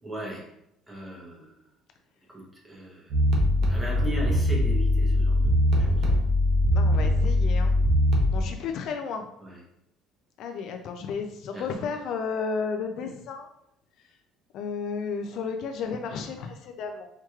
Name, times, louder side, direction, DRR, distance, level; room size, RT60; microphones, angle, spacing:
voice 1, 0.0-0.4 0.9-1.4 2.3-3.0 3.7-5.5 11.5-11.6, right 1 dB, 10° right, -3 dB, 0.8 m, -36 dB
sound 1, 3.1-8.4, left 1 dB, 50° right, 0.7 m, -22 dB
voice 2, 6.7-7.7 8.3-9.2 10.4-13.5 14.5-17.1, left 5 dB, 50° left, 5 dB, 0.3 m, -33 dB
4.4 x 3.0 x 2.3 m, 0.79 s
cardioid pair, 175°, 0 cm